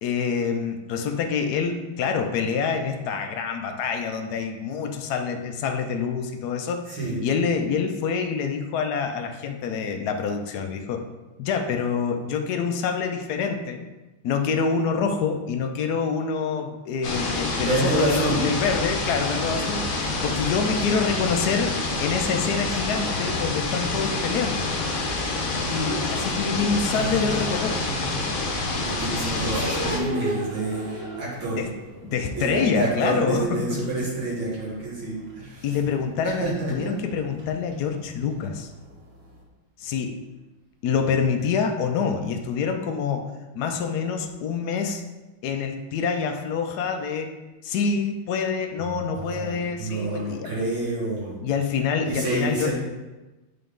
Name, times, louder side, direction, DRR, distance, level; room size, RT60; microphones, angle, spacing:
voice 1, 0.0-11.1 11.4-13.8 14.2-24.7 25.7-27.8 31.6-31.7 32.1-33.8 35.6-38.7 39.8-40.2 40.8-45.0 45.4-47.4 47.6-50.5 51.4-52.7, left 5 dB, 75° left, 5 dB, 0.9 m, -26 dB
sound 1, 17.0-30.0, left 2 dB, 55° left, 1.1 m, -27 dB
voice 2, 17.6-18.4 26.8-27.5 27.8-28.0 28.8-31.7 32.0-35.8 36.2-37.0 48.8-51.4 52.0-52.7, right 2 dB, 75° right, -7 dB, 2.8 m, -28 dB
sound 2, 24.2-39.4, right 1 dB, 40° right, 0.9 m, -39 dB
8.1 x 3.8 x 3.6 m, 1.1 s
omnidirectional pair, 2.2 m